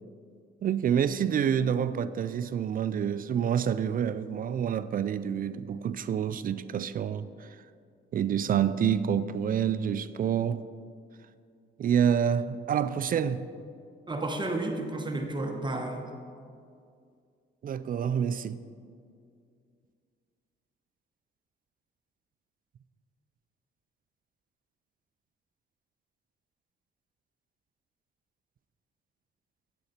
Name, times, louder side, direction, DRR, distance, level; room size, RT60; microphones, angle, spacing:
voice 1, 0.6-7.6 8.1-10.6 11.8-13.4 17.6-18.6, right 8 dB, 45° right, 0.4 m, -28 dB
voice 2, 14.1-16.1, right 2 dB, 25° right, 1.0 m, -32 dB
9.5 x 8.4 x 4.3 m
cardioid pair, 90°, 20 cm